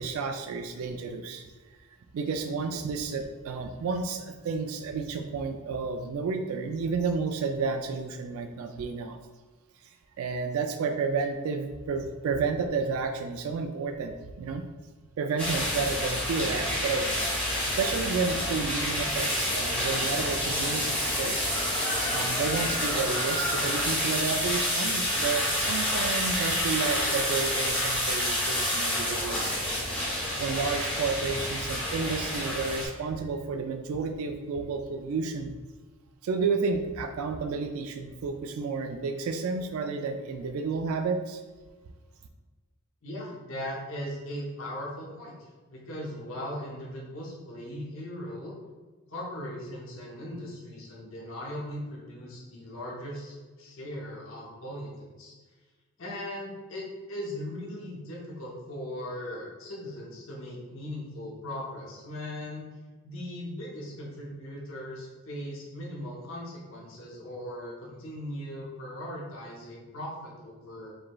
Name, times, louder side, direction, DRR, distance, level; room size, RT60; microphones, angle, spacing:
voice 1, 0.0-1.5 2.1-9.2 10.2-14.6 15.2-17.1 17.6-21.5 22.1-29.6 30.4-35.5 36.2-41.4, right 4 dB, 75° right, 6 dB, 0.3 m, -31 dB
sound 1, 15.4-32.9, left 1 dB, 5° left, 1.0 m, -28 dB
voice 2, 43.0-45.3 45.7-48.5 49.1-55.3 56.0-62.7 63.0-70.9, left 1 dB, 60° left, -4 dB, 0.8 m, -39 dB
4.9 x 3.1 x 2.2 m, 1.3 s
head